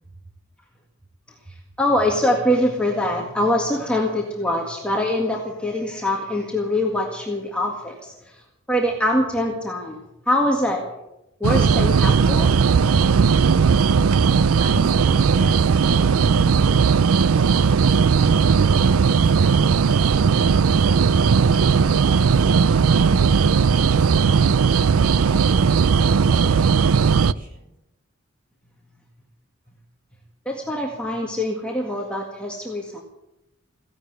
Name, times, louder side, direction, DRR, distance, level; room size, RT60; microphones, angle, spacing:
voice 1, 1.5-10.9 11.4-12.5 30.5-33.0, left 1 dB, 5° left, 0 dB, 1.8 m, -24 dB
sound 1, 11.4-27.3, right 5 dB, 80° right, 0.5 m, -17 dB
voice 2, 14.1-18.9 19.4-22.3 22.8-24.5 25.0-27.6, equal, 40° right, -1 dB, 7.5 m, -39 dB
16.0 x 11.5 x 8.1 m, 0.88 s
head